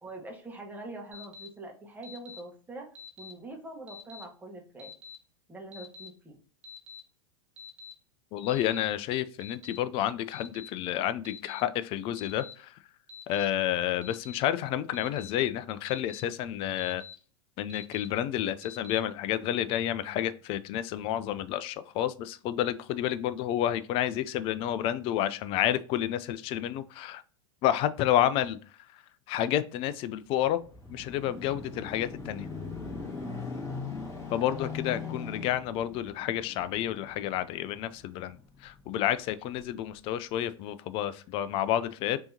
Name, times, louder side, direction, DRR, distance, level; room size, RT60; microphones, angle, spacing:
voice 1, 0.0-2.9 3.2-4.9 5.5-6.3 34.9-35.2, right 2 dB, 10° right, 1.2 m, -44 dB
Alarm, 1.1-1.5 2.0-2.4 3.0-3.3 3.9-4.2 4.8-5.2 5.7-6.1 6.6-7.0 7.6-7.9 8.5-8.8 9.4-9.8 10.3-10.7 11.2-11.6 12.2-12.5 13.1-13.5 14.0-14.4 14.9-15.3 15.9-16.2 16.8-17.1 17.7-18.1 18.6-19.0, left 5 dB, 80° right, 1.5 m, -46 dB
voice 2, 8.3-12.7 13.3-17.0 17.6-27.2 27.6-28.6 29.3-30.6 30.9-32.5 34.3-38.4 38.6-42.2, left 11 dB, 35° left, 0.4 m, -30 dB
sound 1, 30.3-38.9 39.5-39.7, left 4 dB, 20° left, 1.9 m, -40 dB
5.4 x 2.9 x 2.7 m
hypercardioid pair, 95°, 15 cm